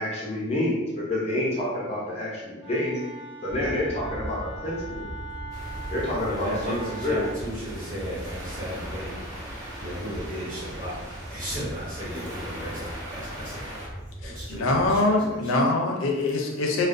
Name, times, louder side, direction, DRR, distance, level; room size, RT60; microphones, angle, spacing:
voice 1, 0.0-3.0 3.4-5.1 5.9-6.8 7.0-7.2, left 1 dB, 30° left, -4 dB, 0.5 m, -28 dB
Wind instrument woodwind instrument, 2.6-7.4, right 2 dB, 90° right, 1.0 m, -41 dB
sound 1, 3.5-15.0, equal, 65° right, 0.5 m, -40 dB
sound 2, 5.5-13.9, right 1 dB, 15° right, 0.6 m, -41 dB
voice 2, 6.2-9.5 9.8-11.0 11.3-13.7 14.2-15.4, equal, 45° right, -9 dB, 1.1 m, -35 dB
voice 3, 14.2-16.9, left 2 dB, 85° left, 1 dB, 0.4 m, -24 dB
2.4 x 2.1 x 2.4 m, 1.1 s
head